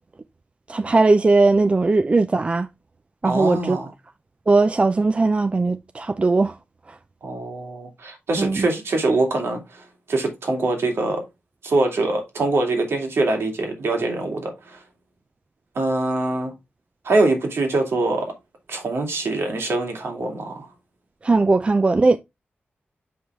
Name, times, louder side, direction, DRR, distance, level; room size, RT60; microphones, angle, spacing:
voice 1, 0.7-2.7 3.2-3.8 4.5-6.5 8.4-8.7 21.2-22.2, right 3 dB, 30° right, 0.4 m, -18 dB
voice 2, 3.2-3.9 7.2-11.2 11.6-14.8 15.7-16.5 17.0-18.3 18.7-20.7, right 2 dB, 80° right, 2.4 m, -23 dB
7.2 x 5.1 x 3.3 m
wide cardioid pair, 130°, 4 cm